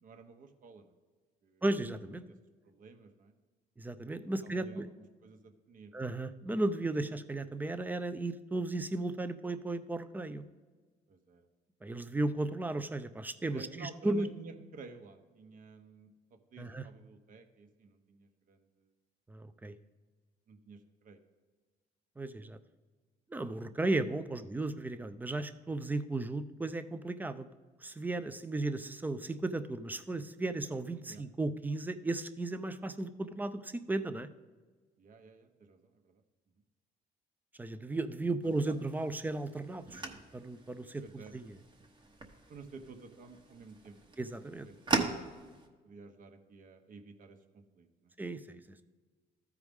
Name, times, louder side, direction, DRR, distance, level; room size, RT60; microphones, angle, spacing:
voice 1, 0.0-0.9 1.4-1.6 2.2-2.4 2.6-3.3 4.4-4.9 5.2-6.0 11.1-11.5 13.5-18.9 20.5-21.2 23.7-23.8 31.1-31.2 35.0-36.2 38.7-38.8 41.0-41.3 42.5-44.2 44.6-44.8 45.8-48.1, right 4 dB, 55° right, 6 dB, 1.0 m, -52 dB
voice 2, 1.6-2.2 3.8-4.9 5.9-10.4 11.8-14.3 16.6-16.8 19.3-19.7 22.2-22.6 23.3-27.5 27.8-34.3 37.6-40.0 40.3-41.6 44.2-44.7 48.2-48.8, right 2 dB, 10° right, 11 dB, 0.4 m, -35 dB
sound 1, 38.4-45.7, right 4 dB, 25° right, 1.0 m, -40 dB
13.5 x 4.8 x 3.6 m, 1.4 s
cardioid pair, 110°, 17 cm